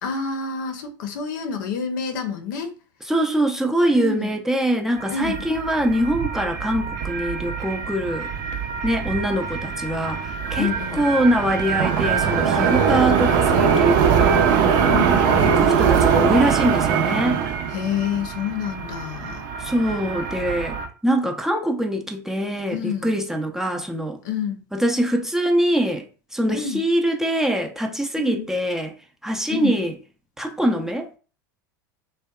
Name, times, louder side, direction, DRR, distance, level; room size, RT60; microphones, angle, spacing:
voice 1, 0.0-2.7 3.9-4.3 5.1-5.4 10.6-11.0 14.9-15.7 17.7-19.4 22.7-23.1 24.2-24.6 26.5-26.8 28.2-28.5 29.5-29.8, left 6 dB, 70° left, 0.6 m, -28 dB
voice 2, 3.0-8.3 8.8-14.4 15.4-17.4 19.6-20.8 21.0-24.2 24.7-26.1 26.3-28.9 29.2-29.9 30.4-31.2, right 1 dB, 5° right, 0.4 m, -23 dB
sound 1, 5.0-20.9, right 6 dB, 60° right, 0.6 m, -22 dB
2.7 x 2.1 x 2.3 m
hypercardioid pair, 95°, 10 cm